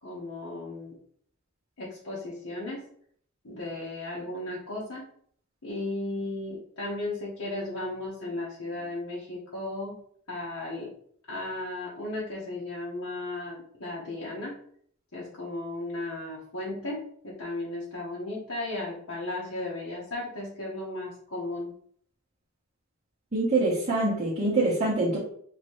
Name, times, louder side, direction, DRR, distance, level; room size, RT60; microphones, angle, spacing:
voice 1, 0.0-0.9 1.8-2.8 3.4-5.0 5.6-10.0 10.3-10.9 11.3-14.6 15.1-21.7, left 2 dB, 90° left, -6 dB, 1.1 m, -35 dB
voice 2, 23.3-25.2, right 2 dB, 35° right, -8 dB, 1.0 m, -25 dB
4.0 x 2.9 x 3.1 m, 0.62 s
head